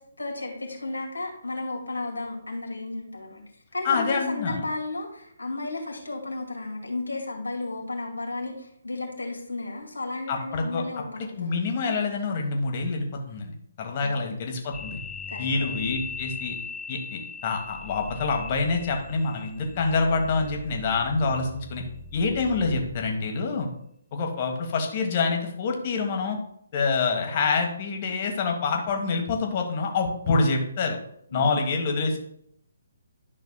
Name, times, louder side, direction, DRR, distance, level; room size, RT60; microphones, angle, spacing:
voice 1, 0.0-3.4 3.7-11.5 14.0-14.4 15.3-15.5 31.3-31.5, left 2 dB, 85° left, -1 dB, 2.1 m, -33 dB
voice 2, 3.8-4.6 10.3-10.8 11.4-15.0 15.4-16.5 16.9-21.8 22.1-23.7 24.1-26.4 26.7-31.0 31.3-32.2, left 4 dB, 35° left, 2 dB, 1.3 m, -26 dB
sound 1, 14.7-23.3, left 4 dB, 10° left, 0.5 m, -39 dB
11.0 x 5.8 x 2.2 m, 0.70 s
figure-of-eight pair, 140°, 0 cm